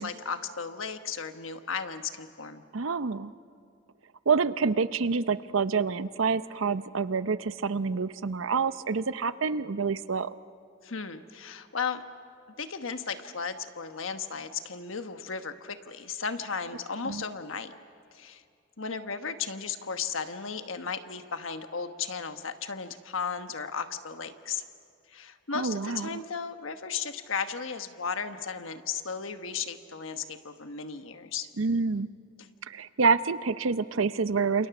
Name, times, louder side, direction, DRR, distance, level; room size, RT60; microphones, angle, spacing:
voice 1, 0.0-2.6 10.8-12.0 12.6-17.7 18.1-18.4 18.8-24.6 25.1-31.5, left 5 dB, 85° left, 8 dB, 1.3 m, -35 dB
voice 2, 2.7-3.3 4.3-10.3 17.0-17.2 25.5-26.2 31.6-32.1 32.6-34.7, right 5 dB, 85° right, 14 dB, 0.7 m, -27 dB
29.0 x 28.0 x 6.0 m, 2.3 s
head